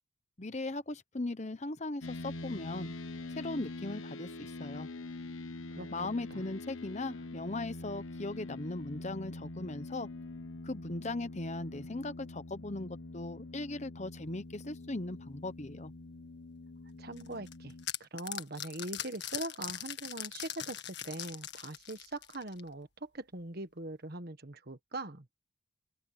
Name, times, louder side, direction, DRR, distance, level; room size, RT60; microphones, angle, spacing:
voice 1, 0.4-2.9 3.3-4.9 5.9-10.1 10.6-15.9, left 2 dB, 35° left, 0.9 m, -38 dB
sound 1, 2.0-17.9, left 2 dB, 80° left, 1.5 m, -44 dB
voice 2, 17.0-17.7 18.0-20.8 21.0-25.3, right 2 dB, 50° right, 1.5 m, -41 dB
sound 2, 17.2-22.7, left 11 dB, 55° left, 1.9 m, -41 dB
open air
head